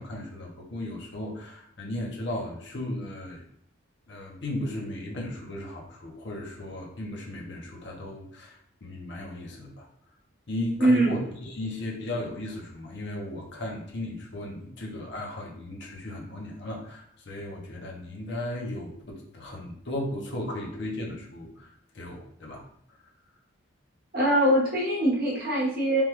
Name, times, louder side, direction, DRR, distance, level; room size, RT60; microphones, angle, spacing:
voice 1, 0.0-3.4 4.1-9.9 10.5-21.7 21.9-22.6, left 1 dB, 55° left, -1 dB, 0.7 m, -36 dB
voice 2, 10.8-11.1 24.1-26.0, right 1 dB, 45° right, -4 dB, 0.9 m, -22 dB
3.4 x 2.2 x 3.0 m, 0.70 s
head